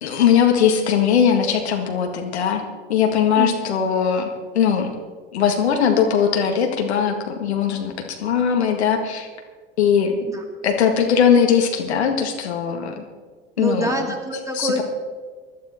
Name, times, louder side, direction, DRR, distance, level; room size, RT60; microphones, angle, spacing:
voice 1, 0.0-2.6 2.9-4.9 5.3-7.9 8.2-9.3 9.8-10.1 10.6-13.0 13.6-13.9 14.5-14.8, left 7 dB, 70° left, 3 dB, 2.0 m, -19 dB
voice 2, 3.4-3.7 10.3-10.4 13.6-14.8, right 1 dB, 10° right, 3 dB, 2.4 m, -26 dB
20.0 x 12.5 x 4.4 m, 1.4 s
figure-of-eight pair, 75°, 33 cm